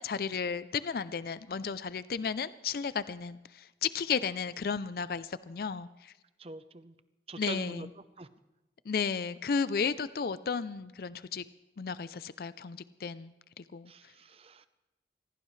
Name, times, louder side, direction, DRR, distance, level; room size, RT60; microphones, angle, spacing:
voice 1, 0.0-6.1 7.4-7.9 8.9-11.4 11.8-13.9, left 6 dB, 55° left, 15 dB, 0.4 m, -34 dB
voice 2, 6.4-6.9 7.3-7.9 8.2-8.3 13.9-14.7, right 3 dB, 35° right, 12 dB, 0.7 m, -44 dB
25.0 x 17.0 x 3.2 m, 1.0 s
head